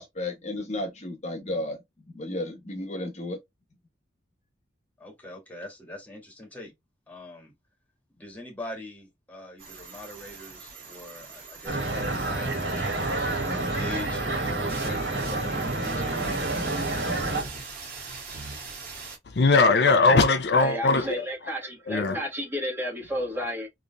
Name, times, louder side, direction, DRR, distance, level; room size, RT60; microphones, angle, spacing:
voice 1, 0.0-3.4, left 1 dB, 40° left, 1.2 m, -33 dB
voice 2, 5.0-6.7 7.1-7.5 8.2-16.3, left 1 dB, 10° left, 1.9 m, -42 dB
sound 1, 9.6-19.2, right 4 dB, 55° right, 1.8 m, -42 dB
sound 2, 11.7-17.4, right 2 dB, 70° right, 1.8 m, -28 dB
voice 3, 19.3-21.1 21.9-22.2, left 3 dB, 65° left, 0.5 m, -20 dB
voice 4, 20.6-23.7, equal, 10° right, 1.3 m, -32 dB
3.9 x 3.2 x 2.2 m
head